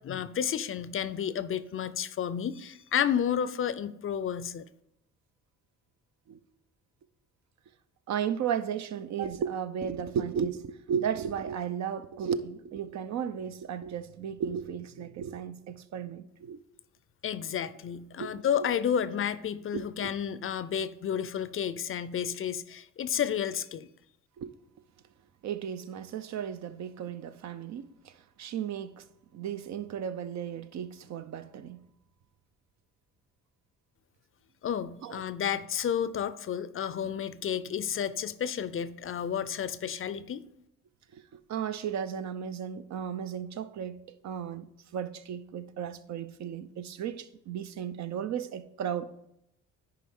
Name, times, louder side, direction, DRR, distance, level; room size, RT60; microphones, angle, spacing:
voice 1, 0.0-4.6 17.2-23.9 34.6-40.4, left 8 dB, 45° left, 0.5 m, -31 dB
voice 2, 8.1-16.6 18.2-18.7 19.7-20.1 24.4-24.5 25.4-29.1 29.3-31.8 35.0-35.2 41.1-49.3, right 8 dB, 65° right, 0.6 m, -35 dB
10.0 x 4.7 x 3.7 m
cardioid pair, 90°, 30 cm